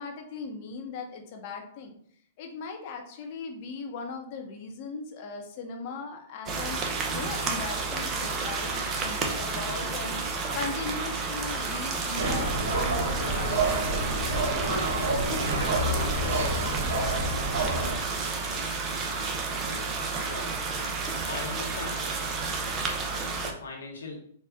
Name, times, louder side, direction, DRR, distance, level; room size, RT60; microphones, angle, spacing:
voice 1, 0.0-1.9 2.4-6.8 7.1-10.2 10.5-14.0, left 4 dB, 50° left, 3 dB, 0.9 m, -38 dB
sound 1, 6.5-23.5, right 4 dB, 25° right, 0.7 m, -31 dB
sound 2, 12.1-18.0, right 2 dB, 65° right, 1.4 m, -28 dB
voice 2, 19.6-20.6 21.3-22.1 23.4-24.3, left 3 dB, 85° left, -1 dB, 1.3 m, -40 dB
4.2 x 2.4 x 3.6 m, 0.63 s
hypercardioid pair, 125°, 0 cm